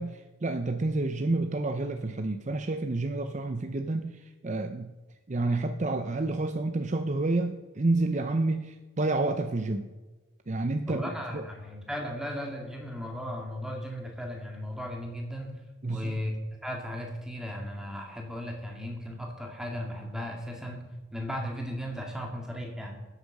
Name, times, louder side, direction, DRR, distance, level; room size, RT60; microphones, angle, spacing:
voice 1, 0.0-4.9 5.3-9.9 10.5-11.4 15.8-16.2, right 2 dB, 35° right, 7 dB, 0.6 m, -29 dB
voice 2, 10.9-15.5 15.9-16.3 16.6-20.8 21.1-23.0, equal, 5° right, 1 dB, 2.0 m, -36 dB
15.5 x 8.2 x 6.6 m, 1.2 s
head